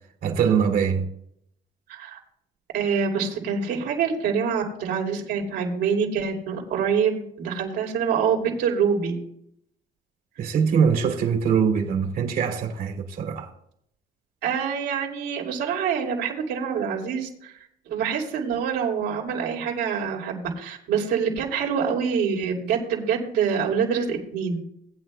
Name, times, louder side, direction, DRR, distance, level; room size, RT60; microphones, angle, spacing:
voice 1, 0.2-1.1 10.4-13.5, right 7 dB, 60° right, 2.4 m, -23 dB
voice 2, 1.9-2.2 2.7-9.2 14.4-17.6 17.9-24.6, right 6 dB, 80° right, 2.9 m, -25 dB
19.0 x 9.1 x 2.2 m
cardioid pair, 110°, 17 cm